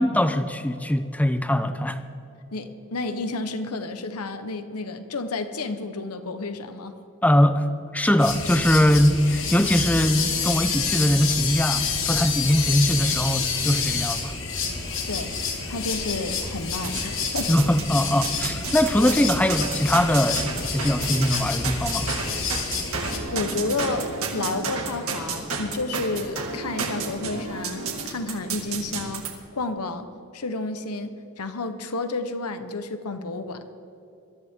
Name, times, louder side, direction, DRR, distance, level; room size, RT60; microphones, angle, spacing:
voice 1, 0.0-2.0 7.2-7.7 7.9-14.3 17.5-22.1, left 1 dB, 5° left, 10 dB, 0.6 m, -21 dB
voice 2, 2.5-7.0 15.1-15.4 15.7-17.5 22.6-22.8 23.3-29.3 29.5-30.1 30.3-33.6, left 3 dB, 90° left, 9 dB, 1.1 m, -31 dB
sound 1, 8.2-23.2, left 5 dB, 60° left, 2.1 m, -28 dB
sound 2, 16.8-17.9 18.2-29.3, right 4 dB, 70° right, 2.2 m, -31 dB
22.0 x 13.5 x 3.7 m, 2.7 s
head